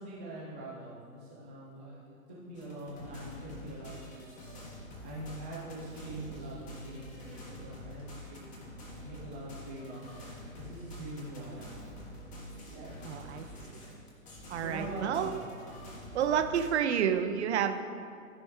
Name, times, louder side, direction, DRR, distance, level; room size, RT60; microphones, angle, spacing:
voice 1, 0.0-4.6 5.0-8.4 8.9-10.3 10.6-11.8 12.7-13.0 14.6-15.4, right 1 dB, 10° right, -15 dB, 0.3 m, -43 dB
sound 1, 2.5-16.7, left 1 dB, 15° left, 1.3 m, -47 dB
voice 2, 13.0-13.5 13.7-13.8 14.5-15.3 16.1-17.8, right 8 dB, 50° right, 7 dB, 0.7 m, -29 dB
14.5 x 5.3 x 3.1 m, 2.4 s
figure-of-eight pair, 120°, 43 cm